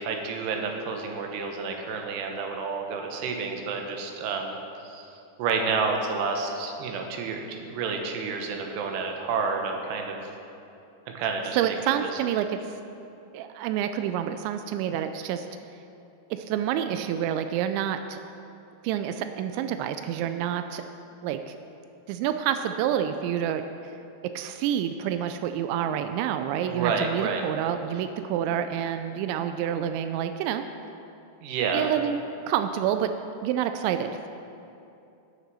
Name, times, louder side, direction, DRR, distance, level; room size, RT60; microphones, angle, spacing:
voice 1, 0.0-4.6 4.8-5.1 5.4-10.2 11.2-11.8 12.0-12.2 26.7-27.4 27.9-28.0 31.4-31.9, right 4 dB, 75° right, 3 dB, 3.1 m, -30 dB
voice 2, 11.6-12.6 13.3-15.5 16.3-18.2 18.8-20.9 21.2-21.6 22.1-23.9 24.4-30.6 31.7-32.2 32.5-33.1 33.4-34.3, right 10 dB, 90° right, 8 dB, 2.9 m, -28 dB
17.0 x 6.6 x 6.2 m, 2.7 s
omnidirectional pair, 5.1 m